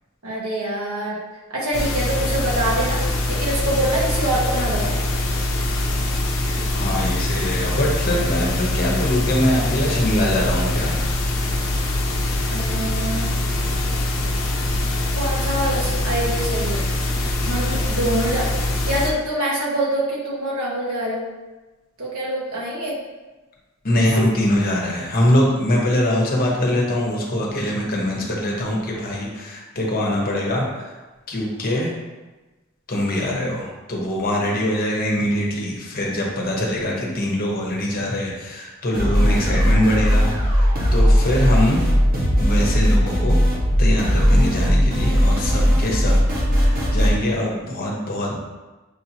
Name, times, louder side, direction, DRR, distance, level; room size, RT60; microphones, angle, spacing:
voice 1, 0.2-1.2 1.5-3.0 3.3-4.9 12.5-13.3 15.1-16.9 17.4-18.5 18.8-21.3 22.0-22.9, right 1 dB, 85° right, -5 dB, 1.3 m, -25 dB
sound 1, 1.7-19.1, left 1 dB, 80° left, 0.7 m, -23 dB
voice 2, 6.7-10.9 17.8-18.0 23.8-30.9 31.3-32.0 32.9-41.8 42.4-43.4 43.8-46.2 46.5-48.4, left 1 dB, 45° left, -2 dB, 1.0 m, -23 dB
sound 2, 38.9-47.1, equal, 45° right, 1.1 m, -18 dB
6.5 x 2.8 x 2.8 m, 1.2 s
head